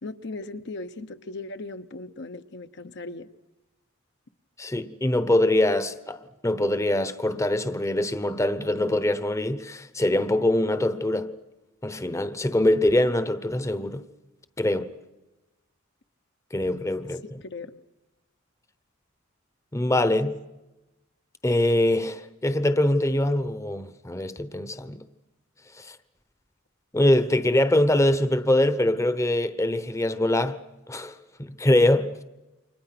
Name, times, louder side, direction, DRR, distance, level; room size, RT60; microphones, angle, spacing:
voice 1, 0.0-3.3 17.4-17.8, left 2 dB, 60° left, 1.0 m, -38 dB
voice 2, 4.6-11.4 11.8-14.0 14.6-14.9 16.5-17.4 19.7-20.4 21.4-25.0 25.8-26.0 26.9-30.6 30.9-32.2, left 1 dB, 15° left, 0.9 m, -23 dB
29.5 x 25.0 x 6.0 m
head